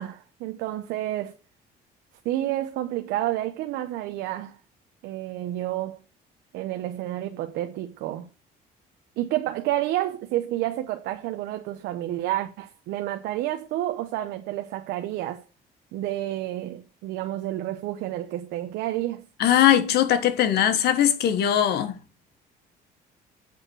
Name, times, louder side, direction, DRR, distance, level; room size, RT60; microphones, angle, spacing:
voice 1, 0.0-1.3 2.2-4.6 5.0-6.0 6.5-8.3 9.2-15.4 15.9-19.2, right 14 dB, 90° right, 0.9 m, -30 dB
voice 2, 19.4-22.0, left 10 dB, 75° left, 1.5 m, -20 dB
8.1 x 5.4 x 6.2 m
cardioid pair, 110°, 17 cm